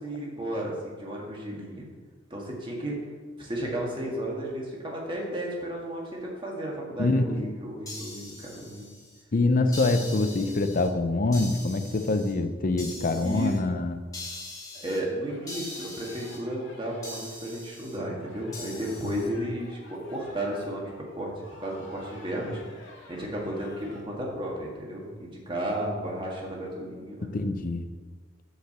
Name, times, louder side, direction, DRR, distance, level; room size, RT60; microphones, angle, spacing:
voice 1, 0.0-1.9 2.3-3.0 3.4-8.8 13.2-13.5 14.7-22.6 23.1-27.3, right 1 dB, 25° right, -3 dB, 1.8 m, -33 dB
voice 2, 7.0-7.5 9.3-14.1 27.2-27.9, left 2 dB, 45° left, 9 dB, 0.6 m, -25 dB
sound 1, 7.9-9.2 9.7-10.9 11.3-12.3 12.8-13.6 14.1-15.0 15.5-16.4 17.0-18.0 18.5-19.3, left 2 dB, 20° left, 1.5 m, -41 dB
sound 2, 15.3-24.0, left 1 dB, 75° left, 1.8 m, -51 dB
6.6 x 4.9 x 6.8 m, 1.5 s
head